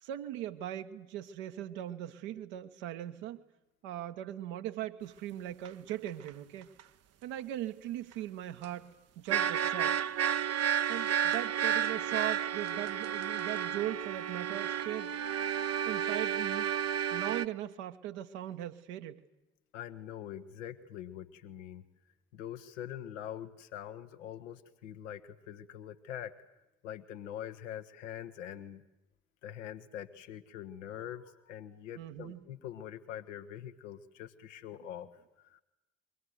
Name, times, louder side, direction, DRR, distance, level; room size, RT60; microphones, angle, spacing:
voice 1, 0.0-3.4 3.8-6.7 7.2-10.0 10.9-15.2 15.8-16.7 17.1-19.2 32.0-32.4, right 12 dB, 70° right, 7 dB, 1.4 m, -39 dB
sound 1, 5.7-5.8 6.1-6.3 6.8-6.9 8.6-8.7 9.3-17.5, right 9 dB, 40° right, 0.9 m, -31 dB
voice 2, 19.7-21.8 22.3-26.3 26.8-28.8 29.4-35.6, left 10 dB, 75° left, 8 dB, 1.4 m, -44 dB
28.0 x 23.5 x 8.1 m, 0.93 s
figure-of-eight pair, 45°, 37 cm